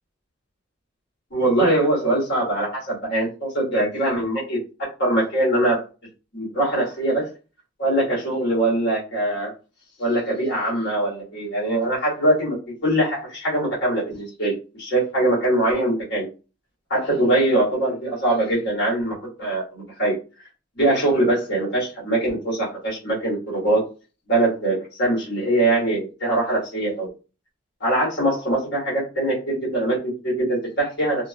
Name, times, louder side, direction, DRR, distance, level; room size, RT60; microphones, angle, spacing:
voice 1, 1.3-4.6 5.0-5.8 6.3-7.3 7.8-9.5 10.0-16.3 16.9-20.1 20.8-23.8 24.3-27.1 27.8-31.3, right 1 dB, 55° left, -6 dB, 1.5 m, -22 dB
2.8 x 2.6 x 2.3 m, 0.34 s
head